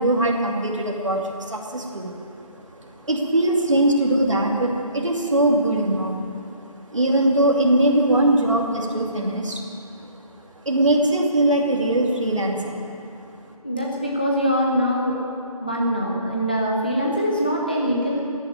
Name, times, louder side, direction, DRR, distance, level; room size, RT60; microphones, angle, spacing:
voice 1, 0.0-2.2 2.8-6.2 6.9-9.6 10.6-12.8, right 1 dB, 50° right, 0 dB, 2.5 m, -21 dB
voice 2, 13.6-15.2 15.6-18.2, equal, 15° left, -3 dB, 0.7 m, -23 dB
15.0 x 9.8 x 9.2 m, 2.5 s
figure-of-eight pair, 170°, 20 cm